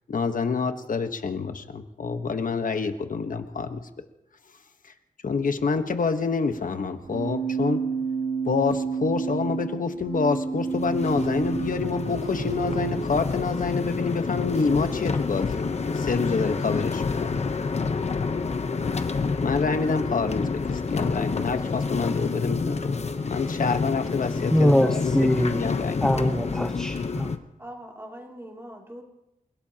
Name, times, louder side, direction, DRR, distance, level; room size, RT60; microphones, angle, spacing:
voice 1, 0.1-3.9 4.8-4.9 5.2-7.8 8.4-15.7 15.9-17.4 19.4-26.3, left 4 dB, 65° left, 7 dB, 1.2 m, -27 dB
Keyboard (musical), 7.0-13.0, right 5 dB, 90° right, 5.1 m, -30 dB
sound 1, 10.6-27.4, left 4 dB, 45° left, 0.9 m, -28 dB
voice 2, 24.5-25.6 26.0-27.3, equal, 5° left, 4 dB, 1.0 m, -22 dB
voice 3, 27.6-29.0, equal, 15° right, -1 dB, 2.8 m, -41 dB
29.0 x 17.0 x 2.9 m, 0.89 s
wide cardioid pair, 115°, 15 cm